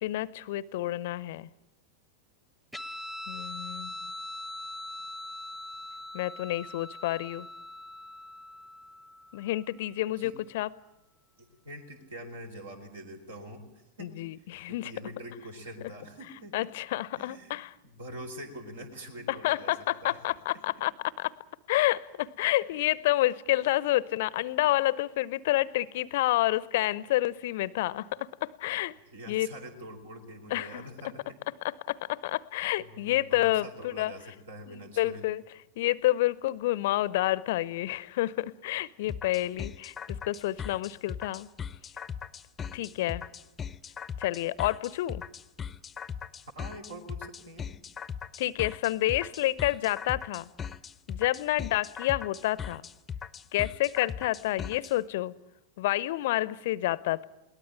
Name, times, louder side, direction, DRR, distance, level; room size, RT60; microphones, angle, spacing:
voice 1, 0.0-1.5 3.3-3.9 6.1-7.5 9.3-10.7 14.0-14.9 16.5-17.7 19.4-20.9 21.2-21.4 21.7-28.9 29.3-29.5 30.5-30.8 31.6-34.1 34.7-35.4 35.8-41.5 42.7-43.2 44.2-45.2 48.4-50.5 51.1-52.8 53.5-55.3 55.8-57.3, left 16 dB, 55° left, 21 dB, 0.7 m, -29 dB
Guitar, 2.7-9.6, left 1 dB, ahead, 1.2 m, -42 dB
voice 2, 11.4-16.6 17.1-17.6 17.8-20.2 20.5-20.9 29.1-31.4 32.8-35.3 39.0-39.3 42.6-43.2 46.5-47.7, right 1 dB, 65° right, 6 dB, 4.1 m, -45 dB
sound 1, 39.1-54.9, left 7 dB, 20° left, 0.8 m, -39 dB
22.5 x 18.5 x 8.7 m, 0.90 s
figure-of-eight pair, 90°, 0 cm